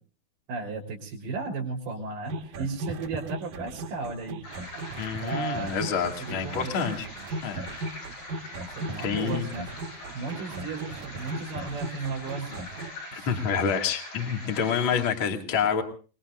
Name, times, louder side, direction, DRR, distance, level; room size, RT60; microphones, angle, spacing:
voice 1, 0.5-4.4 5.2-6.9 8.7-9.7 10.1-12.7 13.1-13.3 14.9-15.0, right 4 dB, 90° right, -4 dB, 5.4 m, -35 dB
sound 1, 2.3-12.9, right 2 dB, 55° right, 2.7 m, -37 dB
sound 2, 4.4-15.1, left 1 dB, 75° left, 9.7 m, -43 dB
voice 2, 5.0-7.1 7.4-7.6 9.0-9.4 13.1-15.8, left 6 dB, 40° left, 3 dB, 2.5 m, -28 dB
27.5 x 21.0 x 2.6 m, 0.38 s
omnidirectional pair, 4.4 m